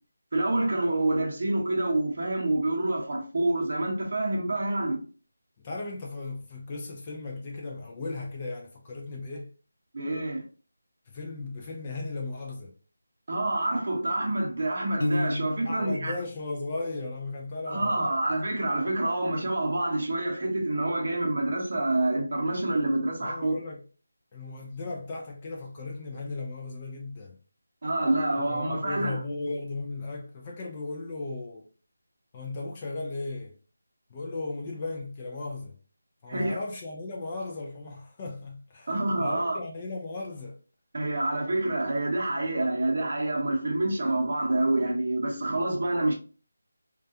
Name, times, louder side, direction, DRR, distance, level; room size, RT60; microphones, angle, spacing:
voice 1, 0.3-5.0 9.9-10.4 13.3-16.2 17.7-23.6 27.8-29.2 36.3-36.6 38.9-39.6 40.9-46.1, right 2 dB, 45° right, 0.7 m, -27 dB
voice 2, 5.6-9.5 11.1-12.7 15.6-18.3 23.2-23.8 24.3-27.4 28.5-31.7 32.3-33.5 34.1-35.8 36.2-40.6, left 3 dB, 20° left, 0.3 m, -36 dB
Piano, 15.0-16.0, left 1 dB, 90° left, 0.5 m, -29 dB
2.2 x 2.2 x 2.6 m
figure-of-eight pair, 175°, 0 cm